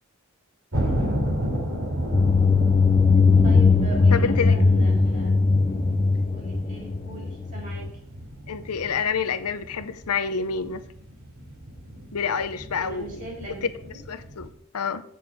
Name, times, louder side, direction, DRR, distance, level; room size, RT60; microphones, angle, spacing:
sound 1, 0.7-14.5, equal, 70° right, 3.0 m, -33 dB
sound 2, 2.1-7.9, left 4 dB, 25° left, 0.4 m, -19 dB
voice 1, 3.4-5.3 6.3-7.9 12.7-14.0, right 1 dB, 35° right, -1 dB, 4.1 m, -40 dB
voice 2, 4.1-4.6 8.5-10.8 12.1-13.3 14.1-14.5 14.7-15.0, left 6 dB, 90° left, 11 dB, 0.7 m, -28 dB
7.8 x 6.5 x 5.0 m, 0.72 s
head